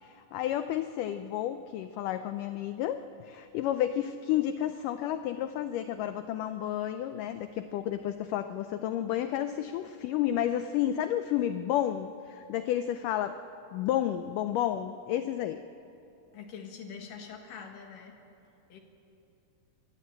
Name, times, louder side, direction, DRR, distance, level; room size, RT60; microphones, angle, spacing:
voice 1, 0.0-13.4 13.7-15.6, left 11 dB, 90° left, 10 dB, 1.8 m, -31 dB
voice 2, 16.3-18.2 18.7-18.8, left 6 dB, 65° left, 3 dB, 3.0 m, -44 dB
24.0 x 14.0 x 8.9 m, 2.7 s
omnidirectional pair, 4.5 m